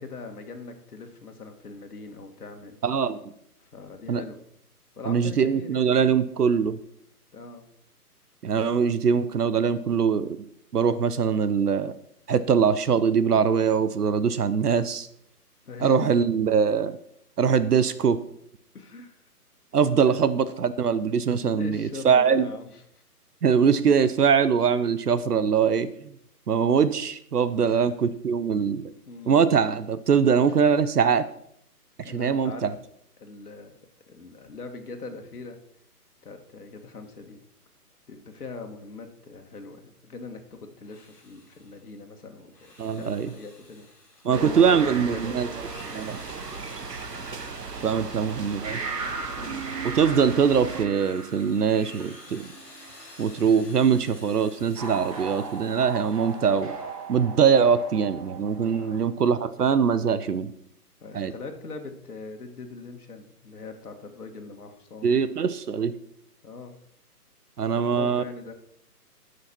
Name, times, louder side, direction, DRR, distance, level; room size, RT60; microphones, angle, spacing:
voice 1, 0.0-2.8 3.6-4.4 5.0-6.0 7.3-7.7 15.6-16.1 18.7-19.2 19.8-20.4 21.4-22.8 27.6-27.9 29.1-29.4 30.5-30.6 32.0-32.7 33.2-33.7 34.1-35.6 36.2-37.4 38.1-43.9 44.2-46.0 49.3-49.7 58.7-59.1 61.0-65.3 66.4-66.8 67.8-68.5, left 4 dB, 70° left, 5 dB, 1.9 m, -41 dB
voice 2, 2.8-3.2 4.1-4.2 5.1-6.8 8.4-10.4 10.7-11.9 12.3-15.1 15.8-17.0 17.4-18.2 19.7-22.5 23.4-26.1 26.5-28.9 29.3-31.2 32.1-32.7 42.8-43.3 44.2-45.5 45.9-46.2 47.8-48.8 49.8-52.5 53.2-56.7 57.1-60.5 61.1-61.3 65.0-65.9 67.6-68.2, right 6 dB, 75° right, 14 dB, 0.9 m, -22 dB
Drill, 40.7-41.9 42.4-44.8 45.4-49.1 49.6-57.0, left 1 dB, 5° left, 1.5 m, -52 dB
sound 1, 44.3-47.9 48.6-53.1 54.8-59.1, right 4 dB, 25° right, 1.3 m, -38 dB
sound 2, 44.3-50.9, right 4 dB, 90° right, 1.4 m, -37 dB
13.5 x 6.5 x 4.4 m, 0.71 s
hypercardioid pair, 155°, 47 cm